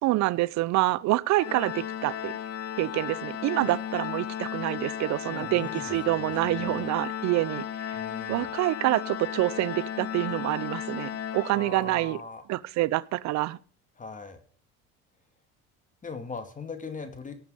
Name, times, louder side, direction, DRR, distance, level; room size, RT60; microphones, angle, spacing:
voice 1, 0.0-2.3 2.8-8.0 8.3-12.2 12.5-13.6, right 18 dB, 60° right, 0.7 m, -27 dB
Organ, 1.4-12.1, left 9 dB, 50° left, 1.4 m, -35 dB
voice 2, 5.3-6.9 7.9-8.5 11.4-12.4 14.0-14.4 16.0-17.4, left 4 dB, 25° left, 2.4 m, -40 dB
18.0 x 7.1 x 5.1 m
cardioid pair, 110°, 31 cm